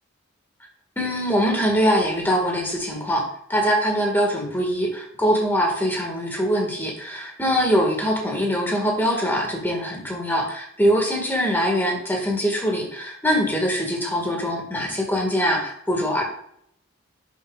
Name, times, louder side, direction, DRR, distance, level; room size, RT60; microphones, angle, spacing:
voice 1, 1.0-16.2, equal, 10° left, 0 dB, 1.8 m, -23 dB
10.5 x 7.0 x 2.4 m, 0.70 s
head